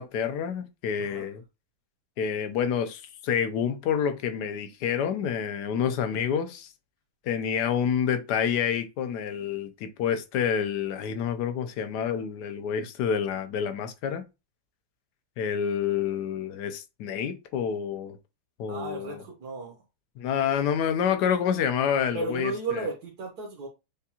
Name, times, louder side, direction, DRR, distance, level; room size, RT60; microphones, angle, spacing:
voice 1, 0.0-1.4 2.2-6.7 7.3-14.2 15.4-18.2 18.6-19.2 20.2-22.9, left 8 dB, 85° left, 1.2 m, -28 dB
voice 2, 18.7-19.8 22.1-23.7, right 3 dB, 70° right, 1.4 m, -34 dB
7.0 x 2.3 x 2.8 m
omnidirectional pair, 1.7 m